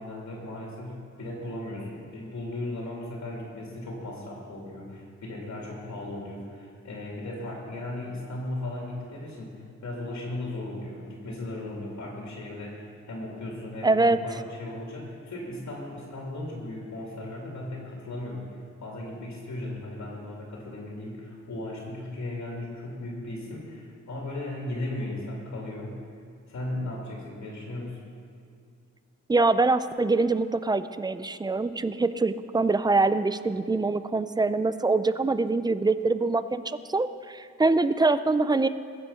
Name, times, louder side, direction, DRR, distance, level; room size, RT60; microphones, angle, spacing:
voice 1, 0.0-18.5 18.8-26.0 26.5-28.0, left 1 dB, 70° left, -2 dB, 2.6 m, -36 dB
voice 2, 13.8-14.2 29.3-38.7, right 3 dB, 15° right, 13 dB, 0.4 m, -24 dB
21.0 x 7.5 x 5.6 m, 2.3 s
wide cardioid pair, 145°, 29 cm